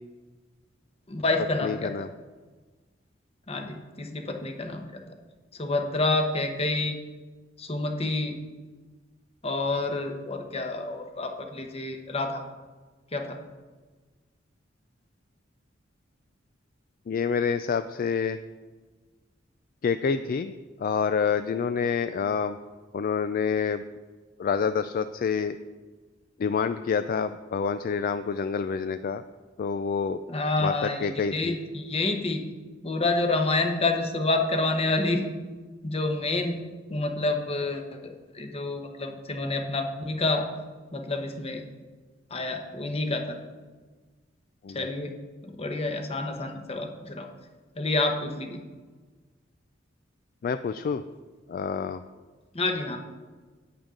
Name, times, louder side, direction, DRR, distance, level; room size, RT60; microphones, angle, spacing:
voice 1, 1.1-2.1 3.5-4.9 5.6-7.0 7.6-8.4 9.4-12.4 13.1-13.4 30.3-32.4 32.8-35.2 35.8-36.6 36.9-40.5 40.9-41.6 42.3-43.4 44.7-45.1 45.4-47.3 47.8-48.6 52.5-53.0, left 2 dB, 30° left, 5 dB, 1.0 m, -28 dB
voice 2, 1.6-2.1 17.1-18.4 19.8-20.5 20.8-22.6 22.9-23.8 24.4-25.6 26.4-29.2 29.6-30.2 30.6-31.5 44.6-44.9 50.4-51.0 51.5-52.0, left 6 dB, 50° left, 11 dB, 0.3 m, -27 dB
11.0 x 8.8 x 3.7 m, 1.4 s
head